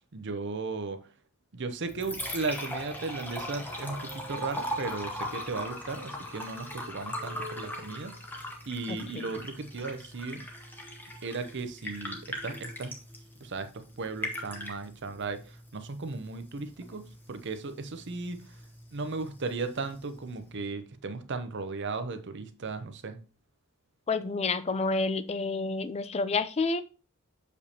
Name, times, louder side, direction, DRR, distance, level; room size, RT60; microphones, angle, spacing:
voice 1, 0.1-1.0 1.5-8.1 8.7-10.4 11.2-12.9 13.4-18.5 18.9-23.2, right 3 dB, 55° right, 0.7 m, -36 dB
Liquid, 1.7-20.7, left 1 dB, 10° left, 1.0 m, -40 dB
voice 2, 24.1-26.8, left 3 dB, 30° left, 0.4 m, -29 dB
6.7 x 5.1 x 2.8 m
head